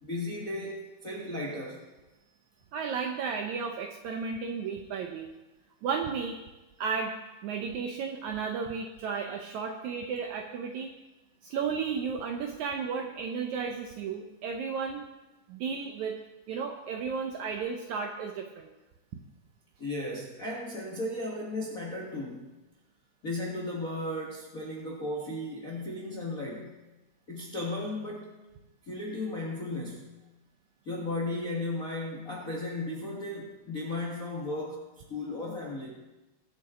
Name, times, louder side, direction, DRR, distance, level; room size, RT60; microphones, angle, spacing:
voice 1, 0.0-1.8 19.8-22.5 23.2-26.8 27.3-28.3 28.9-30.2 30.8-34.8 35.1-35.9, left 2 dB, 50° left, -3 dB, 1.0 m, -35 dB
voice 2, 2.7-5.3 5.8-6.4 6.8-7.1 7.4-10.9 11.4-15.1 15.5-16.2 16.5-18.7, right 6 dB, 75° right, 4 dB, 1.8 m, -33 dB
22.0 x 8.4 x 3.7 m, 1.1 s
omnidirectional pair, 4.2 m